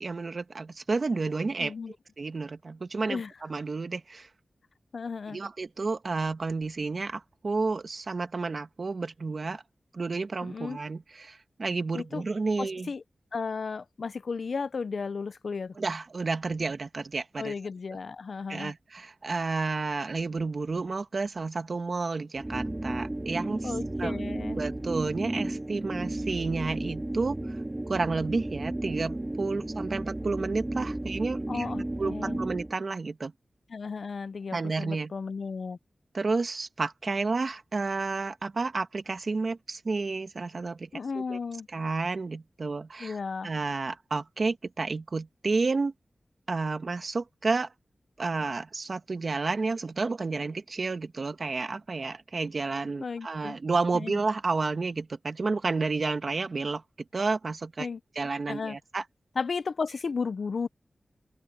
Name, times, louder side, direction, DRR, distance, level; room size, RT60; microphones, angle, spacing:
voice 1, 0.0-1.7 2.2-4.3 5.3-9.6 9.9-12.9 15.8-17.5 18.5-23.7 24.0-27.6 27.9-31.7 32.0-33.3 34.5-35.1 36.1-40.9 41.1-41.4 41.7-43.2 43.4-45.9 46.5-47.7 48.2-56.8 57.1-57.9 58.1-59.0, right 3 dB, 50° right, 1.5 m, -31 dB
voice 2, 1.6-1.9 3.1-3.3 4.9-5.4 10.4-10.8 11.9-12.2 12.6-13.0 13.3-15.8 17.4-18.7 23.6-24.6 29.6-29.7 31.5-32.4 33.7-35.8 40.9-41.7 43.0-43.5 53.0-53.6 53.9-54.2 57.8-58.8 59.4-60.7, left 5 dB, 65° left, 0.5 m, -34 dB
sound 1, 22.3-32.8, right 1 dB, 20° right, 2.0 m, -33 dB
open air
wide cardioid pair, 105°, 0 cm